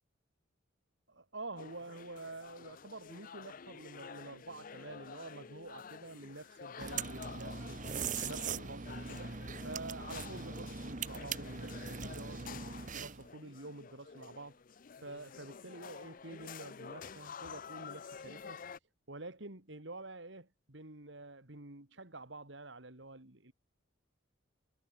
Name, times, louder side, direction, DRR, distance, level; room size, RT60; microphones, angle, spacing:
voice 1, 1.1-7.8 8.2-14.6 15.0-18.6 19.1-23.5, right 2 dB, 65° right, 3.0 m, -48 dB
sound 1, 1.6-18.8, left 6 dB, 45° left, 0.5 m, -50 dB
sound 2, 6.8-13.3, right 5 dB, 40° right, 1.2 m, -41 dB
head